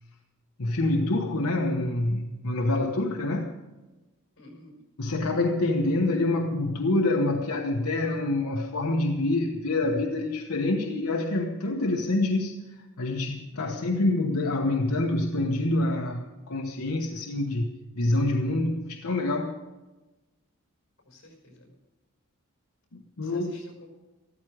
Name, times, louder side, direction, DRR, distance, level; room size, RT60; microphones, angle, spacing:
voice 1, 0.6-3.5 5.0-12.5 13.0-19.6 22.9-23.5, left 2 dB, 85° left, 1 dB, 1.1 m, -26 dB
voice 2, 4.4-4.8 21.0-21.8 23.2-23.9, left 1 dB, 55° left, 3 dB, 5.1 m, -50 dB
13.5 x 13.5 x 4.9 m, 1.1 s
head